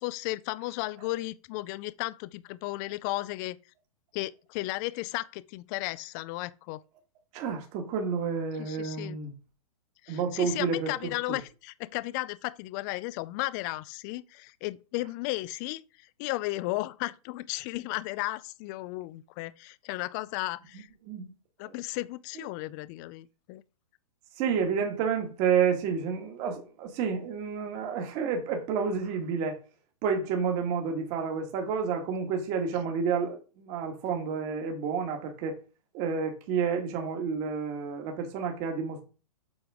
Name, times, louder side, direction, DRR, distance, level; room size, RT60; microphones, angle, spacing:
voice 1, 0.0-3.6 4.1-6.8 8.6-9.2 10.0-20.9 21.6-23.6, left 19 dB, 30° left, 0.4 m, -34 dB
voice 2, 7.3-9.3 10.1-11.4 20.7-21.3 21.6-21.7 24.4-29.6 30.0-35.6 35.9-39.0, right 6 dB, 35° right, 1.8 m, -30 dB
7.8 x 5.0 x 3.6 m
hypercardioid pair, 135°, 20 cm